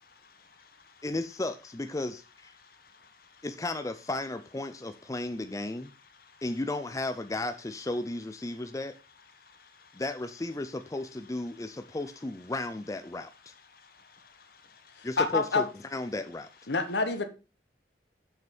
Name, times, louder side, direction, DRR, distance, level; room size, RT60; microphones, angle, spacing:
voice 1, 0.2-0.9 2.6-3.3 9.5-10.0 13.7-15.1, left 5 dB, 55° left, 1.6 m, -58 dB
voice 2, 1.0-2.5 3.4-5.9 6.4-8.9 9.9-13.5 15.0-16.5, left 2 dB, 20° left, 0.5 m, -34 dB
voice 3, 15.0-15.6 16.7-17.2, left 3 dB, 75° left, 1.2 m, -27 dB
7.8 x 6.3 x 4.4 m
head